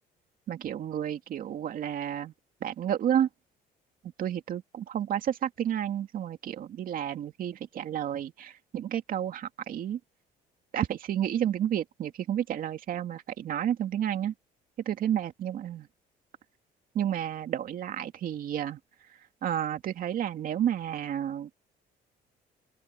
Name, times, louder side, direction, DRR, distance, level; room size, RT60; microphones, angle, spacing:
voice 1, 0.5-2.3 2.6-3.3 4.2-10.0 10.7-14.3 14.9-15.9 16.9-18.8 19.4-21.5, right 10 dB, 55° right, 2.4 m, -31 dB
open air
cardioid pair, 110°, 17 cm